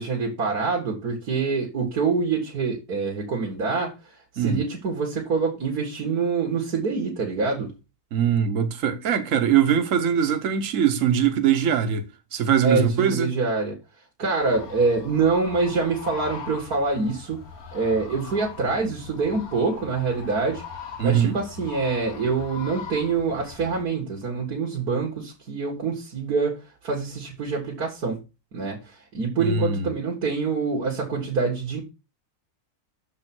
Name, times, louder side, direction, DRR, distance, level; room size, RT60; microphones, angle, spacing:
voice 1, 0.0-7.7 12.6-13.8 14.2-17.4 17.7-20.6 21.0-28.2 28.5-31.8, right 4 dB, 90° right, 2.4 m, -25 dB
voice 2, 8.1-13.3 21.0-21.4 29.4-29.9, right 8 dB, 60° right, 1.4 m, -22 dB
sound 1, 14.4-23.8, left 6 dB, 70° left, 1.9 m, -40 dB
6.6 x 5.4 x 6.0 m
omnidirectional pair, 1.6 m